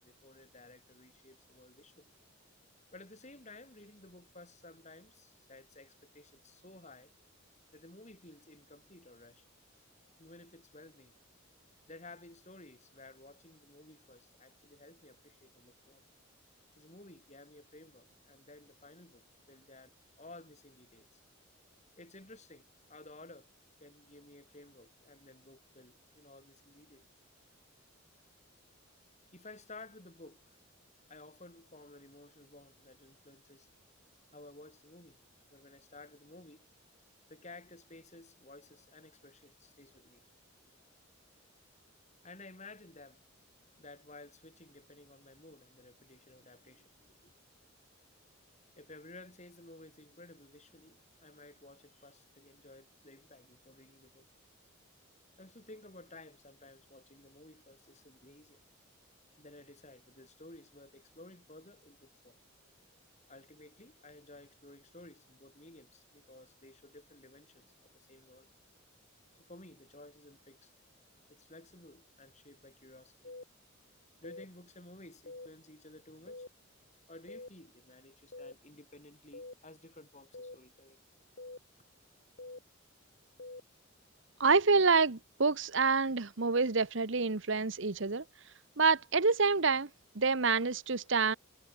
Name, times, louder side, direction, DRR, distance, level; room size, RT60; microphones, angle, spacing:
voice 1, 0.0-2.1 2.9-7.1 7.7-9.4 10.2-11.2 11.9-16.0 16.8-21.1 22.0-23.5 23.8-27.1 29.3-30.6 31.1-33.7 34.3-35.2 35.5-36.7 37.3-40.3 42.2-43.2 43.8-47.3 48.8-54.3 55.4-58.6 59.4-62.4 63.3-68.5 69.4-70.7 71.3-73.4 74.2-76.4 77.1-81.0, left 2 dB, 35° left, 5.3 m, -55 dB
sound 1, 73.2-73.4 74.2-74.5 75.3-75.5 76.3-76.5 77.3-77.5 78.3-78.5 79.3-79.5 80.3-80.6 81.4-81.6 82.4-82.6 83.4-83.6, left 2 dB, 50° left, 2.0 m, -45 dB
voice 2, 84.4-88.2 88.8-89.9 90.2-91.3, right 4 dB, 60° right, 1.1 m, -27 dB
head